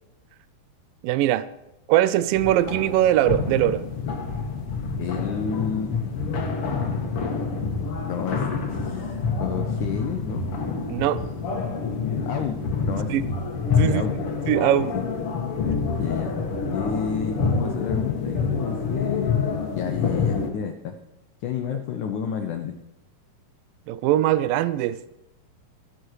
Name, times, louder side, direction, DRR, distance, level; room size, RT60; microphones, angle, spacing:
voice 1, 1.0-1.5 1.9-3.8 10.9-11.2 13.1-13.3 13.8-14.0 14.5-14.9 23.9-25.0, right 13 dB, 80° right, 15 dB, 2.1 m, -21 dB
sound 1, 2.3-20.5, left 4 dB, 50° left, 1.9 m, -27 dB
voice 2, 5.0-6.0 8.1-9.1 9.4-10.5 12.3-13.3 13.8-14.2 14.9-15.0 16.0-16.3 16.7-20.9 21.4-22.8, left 8 dB, 70° left, 6 dB, 1.9 m, -30 dB
14.5 x 11.5 x 4.7 m, 0.93 s
omnidirectional pair, 4.5 m